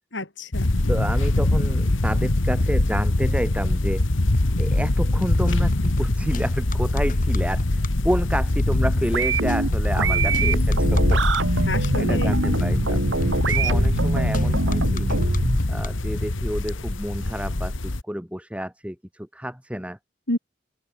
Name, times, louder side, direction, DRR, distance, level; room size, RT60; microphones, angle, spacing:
voice 1, 0.1-0.7 10.0-10.7 11.6-12.4 20.3-20.4, left 1 dB, 65° left, 5.4 m, -30 dB
sound 1, 0.5-18.0, left 1 dB, 85° left, 1.5 m, -23 dB
voice 2, 0.9-4.0 4.6-11.2 11.5-13.0 13.5-15.1 15.7-20.0, equal, 5° right, 5.3 m, -30 dB
sound 2, 4.1-15.9, left 1 dB, 45° left, 2.1 m, -31 dB
Blonk Seq, 9.1-15.6, right 3 dB, 75° right, 1.5 m, -25 dB
open air
head